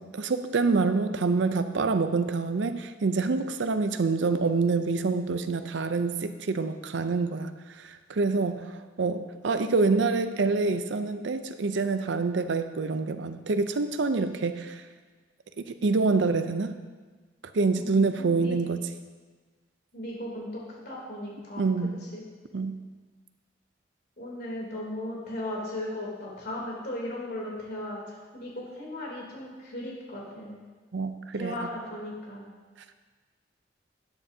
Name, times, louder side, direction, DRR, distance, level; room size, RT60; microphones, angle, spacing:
voice 1, 0.0-7.5 7.8-14.8 15.6-16.8 17.5-18.8 21.6-22.0 22.5-22.8 30.9-31.7, right 4 dB, 70° right, 9 dB, 0.5 m, -26 dB
voice 2, 17.7-18.6 19.9-21.7 22.1-22.2 24.2-30.6 31.3-32.5, left 1 dB, 55° left, -4 dB, 3.0 m, -37 dB
12.5 x 9.5 x 2.7 m, 1.4 s
head